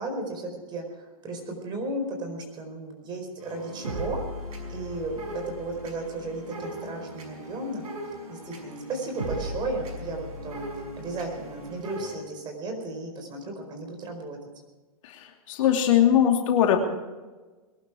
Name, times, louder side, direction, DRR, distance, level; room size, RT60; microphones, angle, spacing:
voice 1, 0.0-4.2 4.7-7.9 8.3-14.4, right 2 dB, 25° right, 5 dB, 4.7 m, -34 dB
sound 1, 3.4-12.2, right 1 dB, 85° right, 5.9 m, -38 dB
voice 2, 15.0-16.8, left 10 dB, 60° left, 2 dB, 2.8 m, -21 dB
22.0 x 12.0 x 4.8 m, 1.2 s
hypercardioid pair, 135°, 18 cm